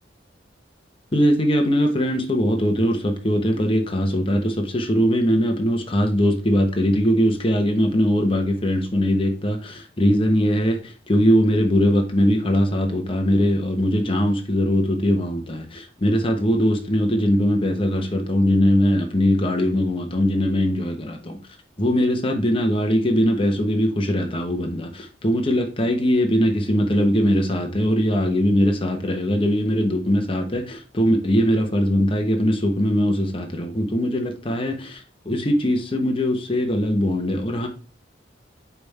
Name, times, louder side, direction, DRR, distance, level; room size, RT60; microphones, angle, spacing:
voice 1, 1.1-21.4 21.8-37.7, equal, 30° left, 1.1 m, -21 dB
8.5 x 3.6 x 4.2 m
head